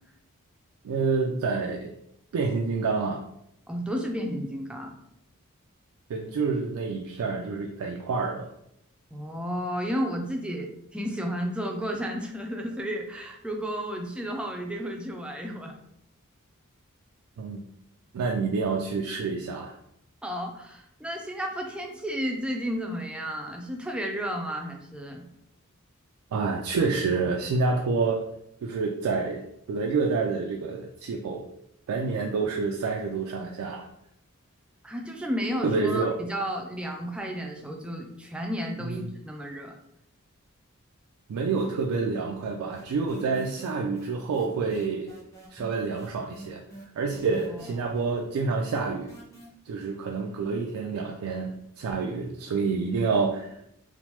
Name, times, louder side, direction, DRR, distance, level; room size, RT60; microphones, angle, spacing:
voice 1, 0.8-1.9 2.3-3.2 6.1-8.5 17.4-17.6 18.1-19.7 26.3-28.3 28.6-31.4 31.9-33.9 35.6-36.1 38.8-39.1 41.3-45.1 45.5-46.6 47.0-49.1 49.7-53.6, right 4 dB, 85° right, 2 dB, 0.3 m, -28 dB
voice 2, 3.7-4.9 9.1-15.7 20.2-25.2 34.8-39.8 47.3-47.7, equal, 5° right, 1 dB, 0.3 m, -32 dB
sound 1, 41.6-42.1 42.3-49.5, right 2 dB, 15° left, 0.7 m, -46 dB
3.0 x 2.1 x 2.9 m, 0.77 s
head